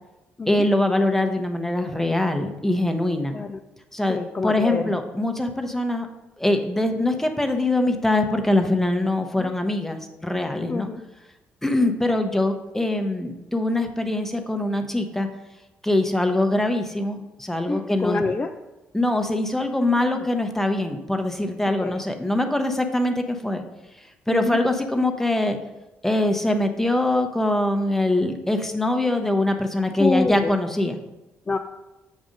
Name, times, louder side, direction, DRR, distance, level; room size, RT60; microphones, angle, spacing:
voice 1, 0.5-3.3 3.9-6.1 6.4-10.9 11.6-15.3 15.8-18.2 18.9-23.6 24.3-25.6 26.0-31.0, left 1 dB, 5° left, 5 dB, 0.8 m, -23 dB
voice 2, 3.3-3.6 4.1-4.9 9.4-9.5 10.7-11.0 11.8-12.0 16.5-16.7 17.7-18.5 20.1-20.2 21.8-22.0 24.3-24.6 30.0-30.5 31.5-31.6, left 3 dB, 25° left, 6 dB, 0.4 m, -27 dB
7.3 x 2.6 x 5.1 m, 1.0 s
hypercardioid pair, 55°, 5 cm